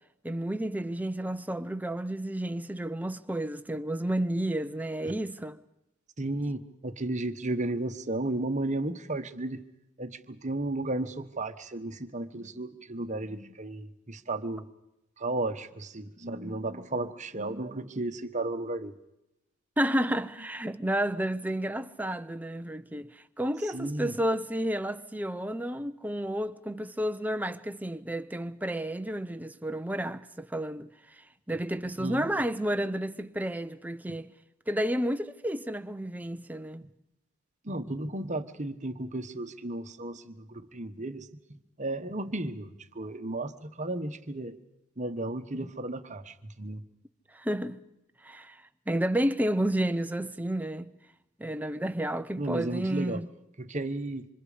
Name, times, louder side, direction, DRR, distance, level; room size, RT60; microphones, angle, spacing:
voice 1, 0.2-5.6 19.8-30.9 31.2-34.3 34.7-36.8 47.3-47.8 48.2-50.9 51.4-53.3, right 1 dB, 5° right, 0.8 m, -31 dB
voice 2, 6.2-9.6 10.0-14.7 15.2-19.0 23.6-24.2 32.0-32.3 34.1-34.2 36.8-36.9 37.6-41.3 41.8-44.6 45.0-46.8 52.4-53.2 53.6-54.3, right 2 dB, 35° right, 1.2 m, -34 dB
27.0 x 26.0 x 5.1 m
head